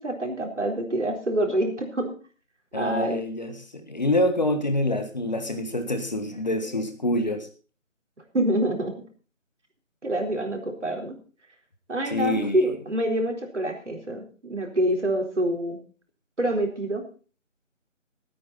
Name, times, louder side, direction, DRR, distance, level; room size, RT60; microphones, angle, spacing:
voice 1, 0.0-2.1 2.7-3.2 8.3-8.9 10.0-11.2 11.9-15.8 16.4-17.0, right 1 dB, 65° right, 2 dB, 4.1 m, -26 dB
voice 2, 2.7-7.5 12.0-12.7, left 1 dB, 35° left, 7 dB, 1.5 m, -26 dB
18.5 x 9.5 x 4.1 m, 0.37 s
figure-of-eight pair, 165°, 39 cm